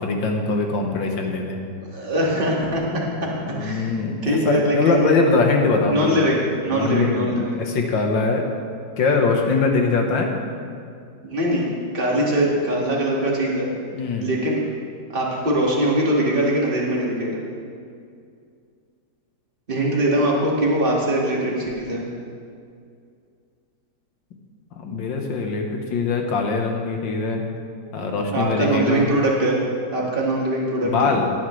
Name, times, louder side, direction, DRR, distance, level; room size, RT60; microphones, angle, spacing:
voice 1, 0.0-1.6 3.4-6.2 6.7-8.5 9.0-10.3 13.9-14.3 24.7-27.4 27.9-29.1 30.8-31.3, left 4 dB, 75° left, 2 dB, 1.9 m, -22 dB
voice 2, 1.9-3.9 4.2-5.2 5.9-6.4 6.6-7.6 11.2-11.7 11.9-13.7 14.2-14.6 15.1-17.4 19.7-22.0 28.3-29.6 29.9-31.1, right 1 dB, 30° right, -4 dB, 2.1 m, -22 dB
18.0 x 10.5 x 3.2 m, 2.3 s
omnidirectional pair, 2.0 m